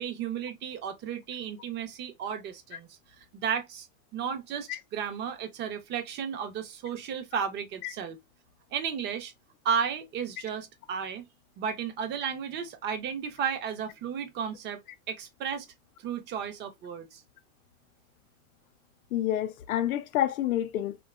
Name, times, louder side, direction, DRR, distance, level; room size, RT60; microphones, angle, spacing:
voice 1, 0.0-3.0 3.3-3.9 4.1-8.2 8.7-9.3 9.6-11.3 11.6-14.8 15.1-15.7 16.0-17.2, right 7 dB, 25° right, 0.5 m, -33 dB
voice 2, 19.1-21.0, left 12 dB, 85° left, 0.6 m, -28 dB
2.7 x 2.2 x 2.3 m
supercardioid pair, 125°, 41 cm